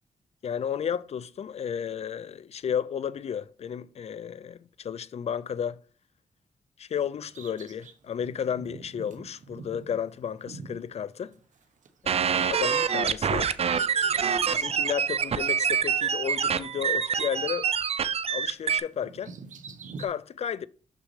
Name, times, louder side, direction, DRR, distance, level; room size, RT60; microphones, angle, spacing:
voice 1, 0.4-5.8 6.8-11.3 12.0-13.5 14.3-17.7 18.3-19.3 20.0-20.7, left 8 dB, 55° left, 0.4 m, -33 dB
Bird vocalization bird call bird song, 7.2-11.9 12.1-14.9 15.3-15.4 16.3-17.8 18.0-20.1, right 4 dB, 75° right, 0.9 m, -47 dB
sound 1, 12.1-18.8, right 7 dB, 50° right, 0.5 m, -26 dB
6.5 x 6.3 x 3.2 m
cardioid pair, 75°, 13 cm